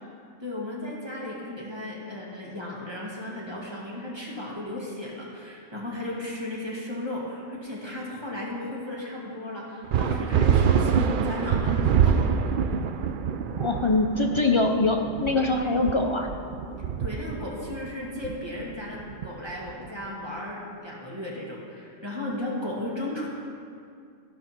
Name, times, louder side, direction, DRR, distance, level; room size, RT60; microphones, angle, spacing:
voice 1, 0.4-12.3 17.0-23.3, left 1 dB, 20° right, -5 dB, 2.1 m, -35 dB
sound 1, 9.9-19.9, right 7 dB, 65° right, 0.5 m, -26 dB
voice 2, 13.5-16.3, left 2 dB, 45° left, 2 dB, 0.4 m, -23 dB
13.5 x 5.4 x 5.9 m, 2.4 s
omnidirectional pair, 1.3 m